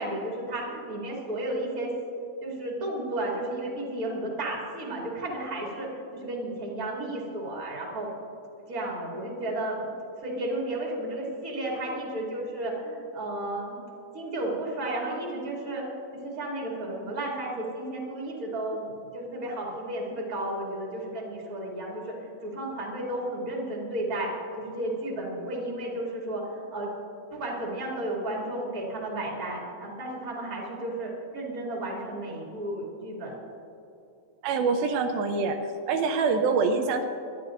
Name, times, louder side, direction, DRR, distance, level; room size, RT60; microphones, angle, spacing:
voice 1, 0.0-1.9 2.4-8.1 8.7-9.8 10.2-13.8 14.1-15.8 16.2-22.1 22.4-24.3 24.6-26.9 27.3-33.3, right 1 dB, 25° right, -3 dB, 2.8 m, -33 dB
voice 2, 34.4-35.6 35.9-37.0, right 4 dB, 85° right, 5 dB, 2.6 m, -25 dB
25.5 x 11.5 x 2.6 m, 2.8 s
omnidirectional pair, 4.2 m